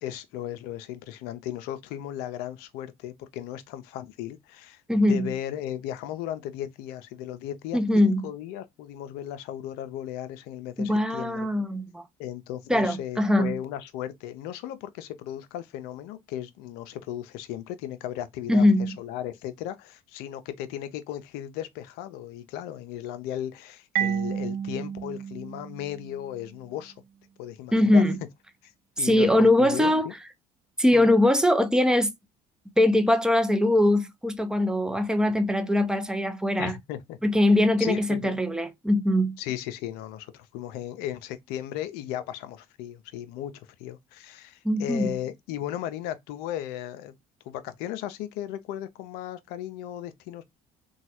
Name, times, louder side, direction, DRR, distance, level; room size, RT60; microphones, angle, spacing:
voice 1, 0.0-4.8 5.1-11.5 12.2-26.9 27.4-28.0 28.6-28.7 29.0-30.1 30.9-31.1 36.6-37.2 37.8-38.4 39.4-47.1 47.4-50.5, left 11 dB, 75° left, 0.5 m, -36 dB
voice 2, 4.9-5.3 7.7-8.2 10.8-12.0 12.7-13.6 18.5-18.9 27.7-28.2 29.0-30.1 30.8-32.1 32.8-36.7 37.2-39.4 44.6-45.1, left 1 dB, 5° right, 0.6 m, -22 dB
Marimba xylophone, 23.9-26.6, right 9 dB, 65° right, 0.5 m, -31 dB
3.0 x 2.3 x 2.8 m
supercardioid pair, 70°, 16 cm